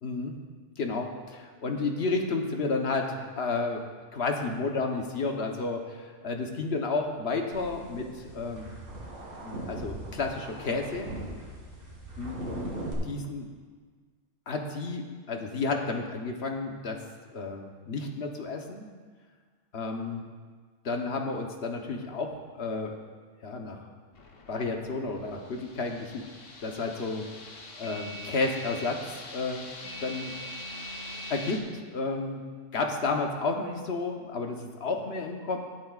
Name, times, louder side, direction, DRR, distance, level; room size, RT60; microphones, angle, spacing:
voice 1, 0.0-0.4 0.8-3.8 4.1-8.7 9.4-11.1 12.2-12.5 13.0-13.5 14.5-17.0 17.3-18.8 19.7-20.2 20.8-22.9 23.4-23.8 24.5-26.3 26.6-27.2 27.8-29.6 30.0-30.3 31.3-32.4 32.7-35.6, left 3 dB, 60° left, 3 dB, 1.2 m, -31 dB
sound 1, 7.5-12.9, right 1 dB, 75° right, 2.5 m, -40 dB
sound 2, 24.1-31.6, left 1 dB, 85° left, 1.5 m, -42 dB
17.5 x 8.6 x 2.4 m, 1.5 s
omnidirectional pair, 1.3 m